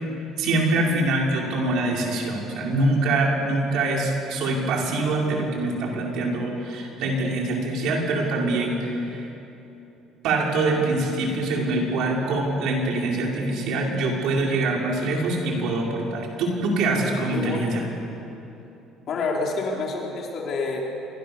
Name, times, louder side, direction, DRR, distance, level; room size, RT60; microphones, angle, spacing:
voice 1, 0.4-9.2 10.2-17.8, right 2 dB, 60° right, -1 dB, 5.5 m, -24 dB
voice 2, 17.3-17.8 19.1-20.8, left 3 dB, 40° left, -1 dB, 4.3 m, -28 dB
28.5 x 24.5 x 7.2 m, 3.0 s
cardioid pair, 175°, 0 cm